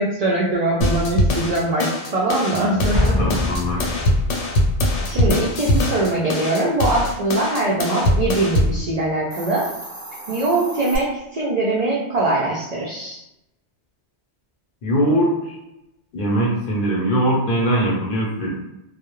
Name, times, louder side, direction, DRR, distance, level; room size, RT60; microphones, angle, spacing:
voice 1, 0.0-3.3 3.7-4.0 5.1-9.7 10.3-13.2, right 2 dB, 65° right, -5 dB, 0.4 m, -22 dB
sound 1, 0.8-8.8, left 1 dB, 80° left, 0.9 m, -21 dB
Explosion, 2.9-4.6, left 2 dB, 15° left, 0.5 m, -23 dB
voice 2, 3.2-3.8 14.8-15.6 16.1-18.6, right 1 dB, 55° left, -3 dB, 0.7 m, -21 dB
Hiss, 9.2-11.0, right 1 dB, 30° right, 0.7 m, -35 dB
2.2 x 2.0 x 2.9 m, 0.88 s
omnidirectional pair, 1.2 m